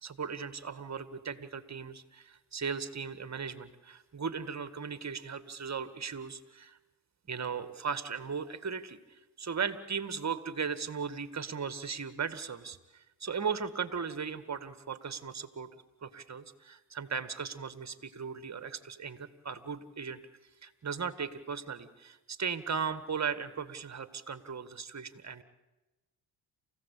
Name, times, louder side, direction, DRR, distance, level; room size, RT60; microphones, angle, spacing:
voice 1, 0.0-6.8 7.3-9.0 9.4-15.7 16.0-20.2 20.6-25.4, right 6 dB, 35° right, 12 dB, 2.0 m, -37 dB
28.5 x 16.0 x 8.5 m, 1.0 s
supercardioid pair, 60°, 47 cm